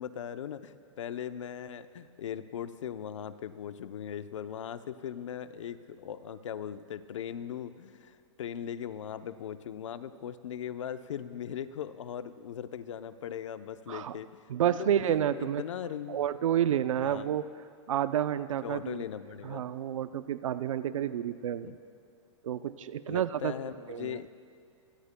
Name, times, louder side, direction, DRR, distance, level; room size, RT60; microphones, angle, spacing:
voice 1, 0.0-16.2 17.0-17.3 18.6-19.7 21.6-21.8 23.1-24.3, left 9 dB, 70° left, 11 dB, 0.7 m, -39 dB
voice 2, 14.5-15.6 16.1-17.4 17.9-19.0 19.4-21.7 22.4-23.5 23.9-24.2, right 10 dB, 85° right, 12 dB, 0.6 m, -30 dB
24.0 x 23.0 x 2.2 m, 2.3 s
hypercardioid pair, 175°, 16 cm